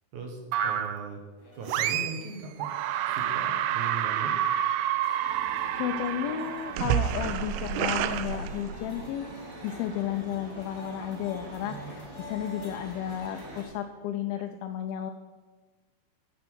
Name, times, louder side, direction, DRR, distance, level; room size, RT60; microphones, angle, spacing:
voice 1, 0.1-1.2 1.5-2.7 3.1-4.4 11.6-12.1, right 4 dB, 60° right, 2 dB, 2.2 m, -39 dB
sound 1, 0.5-1.1 1.7-2.3 2.6-9.1, right 10 dB, 80° right, 2.6 m, -29 dB
sound 2, 1.4-13.7, left 2 dB, 35° left, 1.6 m, -48 dB
sound 3, 5.2-13.6, right 2 dB, 45° right, 2.3 m, -46 dB
voice 2, 5.4-9.3 9.6-15.1, left 10 dB, 80° left, 5 dB, 2.2 m, -33 dB
15.5 x 5.7 x 6.2 m, 1.4 s
omnidirectional pair, 4.8 m